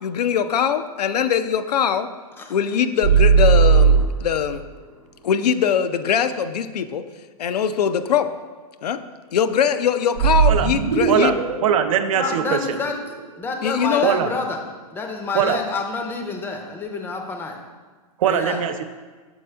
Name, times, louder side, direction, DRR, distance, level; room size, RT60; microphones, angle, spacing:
voice 1, 0.0-2.1 2.5-4.6 5.2-7.0 7.4-8.3 8.8-9.0 9.3-11.3 13.6-14.1, left 8 dB, 85° left, 11 dB, 0.4 m, -22 dB
sound 1, 3.0-4.6 10.2-13.2, right 5 dB, 85° right, 0.7 m, -18 dB
voice 2, 11.6-12.8 14.0-14.3 15.3-15.6 18.2-18.8, right 9 dB, 55° right, 9 dB, 0.5 m, -21 dB
voice 3, 12.1-13.0 13.4-14.6 14.9-17.6 18.2-18.6, left 4 dB, 10° left, 3 dB, 0.5 m, -28 dB
7.0 x 4.2 x 3.3 m, 1.4 s
hypercardioid pair, 135°, 20 cm